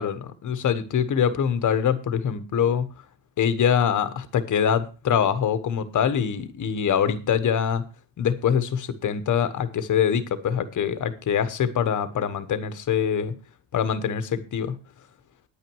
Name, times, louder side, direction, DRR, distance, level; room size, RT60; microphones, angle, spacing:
voice 1, 0.0-2.9 3.4-7.8 8.2-13.3 13.7-14.8, left 8 dB, 40° left, 12 dB, 1.2 m, -24 dB
10.0 x 9.2 x 4.7 m, 0.33 s
cardioid pair, 150°, 48 cm